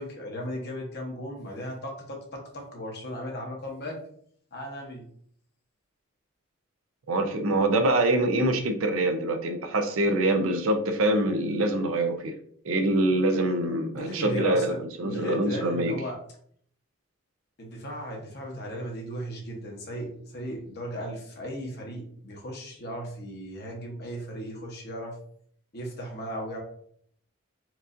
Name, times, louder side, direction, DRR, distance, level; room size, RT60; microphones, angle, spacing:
voice 1, 0.0-4.0 4.5-5.1 13.9-16.2 17.6-25.2 25.7-26.6, equal, 50° left, 1.0 m, -36 dB
voice 2, 7.1-12.4 12.6-14.7 15.0-16.0, right 1 dB, 85° right, 0.5 m, -25 dB
4.5 x 2.5 x 2.6 m
head